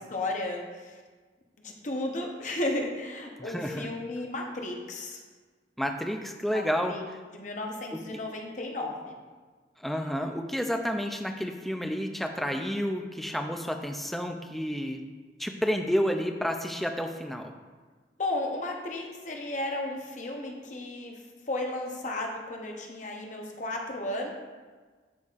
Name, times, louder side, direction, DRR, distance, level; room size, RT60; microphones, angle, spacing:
voice 1, 0.1-1.0 1.6-5.2 6.5-6.6 6.9-7.0 7.3-9.2 18.2-21.2 21.5-24.3, left 2 dB, 45° left, 1 dB, 0.8 m, -34 dB
voice 2, 3.4-3.9 5.8-7.0 7.9-8.2 9.8-15.1 15.4-17.5, equal, ahead, 4 dB, 0.4 m, -30 dB
11.5 x 4.1 x 2.4 m, 1.4 s
head